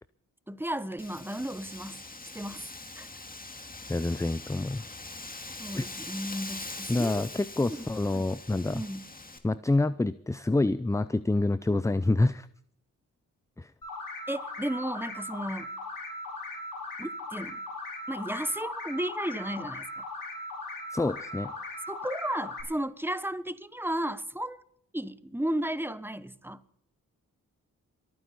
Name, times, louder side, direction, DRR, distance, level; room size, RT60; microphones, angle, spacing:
voice 1, 0.5-2.0 2.3-2.7 3.0-3.1 5.6-7.3 7.8-7.9 8.1-8.3 8.7-9.1 14.3-15.7 17.0-17.6 18.1-20.0 21.9-24.6 24.9-26.6, right 1 dB, 5° right, 1.1 m, -34 dB
Wind, 1.0-9.4, left 2 dB, 25° left, 2.1 m, -43 dB
voice 2, 3.9-4.8 5.8-5.9 6.9-8.8 9.4-12.5 13.6-13.7 20.9-21.5, left 2 dB, 10° left, 0.5 m, -27 dB
sound 1, 13.8-22.6, left 2 dB, 70° left, 4.6 m, -39 dB
23.5 x 9.6 x 4.2 m
cardioid pair, 55°, 34 cm